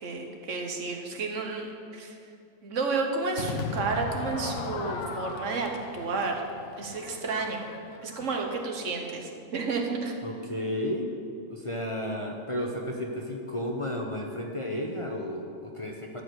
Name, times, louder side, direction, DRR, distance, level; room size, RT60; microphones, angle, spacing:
voice 1, 0.0-2.2 2.6-6.4 6.8-7.7 8.0-10.1, right 4 dB, 70° right, 2 dB, 1.5 m, -31 dB
Crowd / Fireworks, 3.4-8.6, left 4 dB, 65° left, 1.2 m, -37 dB
voice 2, 10.2-11.1 11.5-16.2, left 1 dB, 30° left, 0 dB, 0.7 m, -33 dB
13.0 x 4.9 x 7.8 m, 2.5 s
omnidirectional pair, 1.3 m